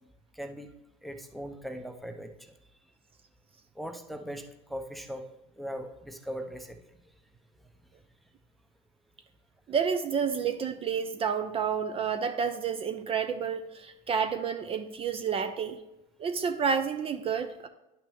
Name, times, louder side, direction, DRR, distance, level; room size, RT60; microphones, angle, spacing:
voice 1, 0.3-0.7 1.0-2.6 3.7-5.3 5.6-6.8, equal, ahead, 6 dB, 0.8 m, -39 dB
voice 2, 9.7-15.8 16.2-17.7, right 6 dB, 30° right, 9 dB, 0.7 m, -30 dB
10.5 x 5.8 x 3.5 m, 0.92 s
supercardioid pair, 115°, 19 cm